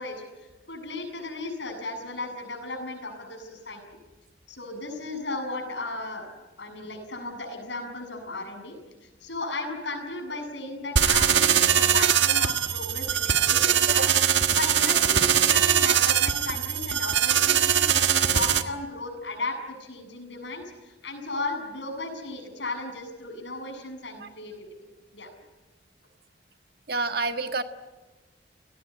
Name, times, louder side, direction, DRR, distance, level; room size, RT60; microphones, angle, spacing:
voice 1, 0.0-3.8 4.5-6.3 6.6-8.8 9.2-14.1 14.5-24.5 25.1-25.3, left 2 dB, 75° left, 5 dB, 7.3 m, -35 dB
sound 1, 11.0-18.6, right 9 dB, 80° right, 1.6 m, -22 dB
voice 2, 26.9-27.6, right 3 dB, 55° right, 7 dB, 1.6 m, -28 dB
30.0 x 18.5 x 9.9 m, 1.2 s
head